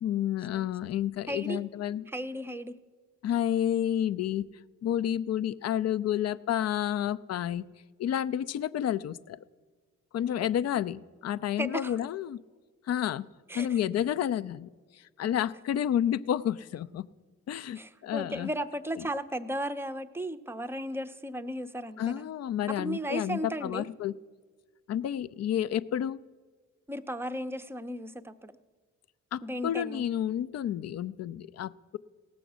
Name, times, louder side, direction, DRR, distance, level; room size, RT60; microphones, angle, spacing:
voice 1, 0.0-2.0 3.2-4.4 4.8-7.7 8.0-9.4 10.1-12.4 12.9-13.3 13.5-17.1 17.5-18.5 22.0-24.1 24.9-26.2 29.3-32.0, left 10 dB, 50° left, 17 dB, 0.4 m, -30 dB
voice 2, 0.5-0.9 1.3-1.6 2.1-2.7 10.4-10.5 11.6-12.0 13.5-13.8 17.8-22.3 22.7-23.9 26.9-28.5 29.4-30.1, equal, 5° right, 10 dB, 0.6 m, -35 dB
17.0 x 6.9 x 6.2 m, 1.5 s
supercardioid pair, 65°, 32 cm